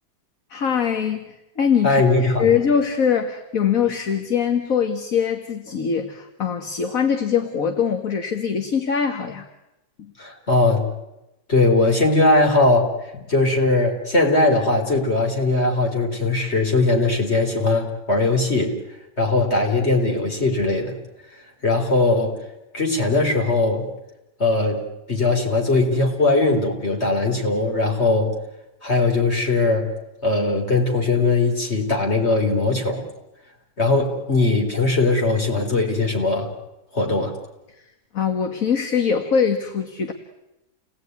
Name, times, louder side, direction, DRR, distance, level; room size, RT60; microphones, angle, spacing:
voice 1, 0.5-9.5 38.1-40.1, left 7 dB, 50° left, 6 dB, 2.0 m, -22 dB
voice 2, 1.8-2.5 10.2-10.8 11.5-12.9 13.3-18.7 19.2-21.0 21.6-22.4 22.7-23.8 24.4-24.8 25.1-28.3 28.8-29.9 30.2-33.0 33.8-36.5 36.9-37.3, left 2 dB, 35° left, 2 dB, 4.4 m, -20 dB
29.5 x 19.0 x 9.6 m, 0.96 s
omnidirectional pair, 1.9 m